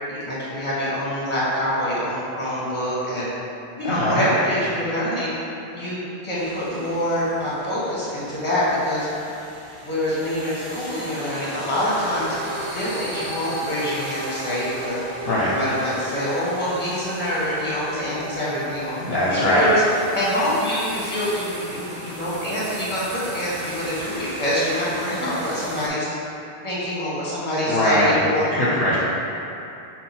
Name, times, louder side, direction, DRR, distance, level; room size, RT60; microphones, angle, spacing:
voice 1, 0.1-3.3 3.8-5.3 5.7-9.3 9.8-12.4 12.7-15.0 15.5-19.0 19.3-26.1 26.6-28.5, equal, 30° left, -8 dB, 1.2 m, -25 dB
voice 2, 3.8-4.2 15.3-15.5 19.0-19.7 25.2-25.3 27.7-28.2 28.5-29.0, left 1 dB, 60° left, -8 dB, 0.8 m, -21 dB
sound 1, 6.4-25.9, right 1 dB, 65° right, 1.1 m, -38 dB
sound 2, 12.1-24.2, right 1 dB, 25° right, 1.4 m, -37 dB
5.6 x 2.3 x 4.1 m, 2.8 s
omnidirectional pair, 1.1 m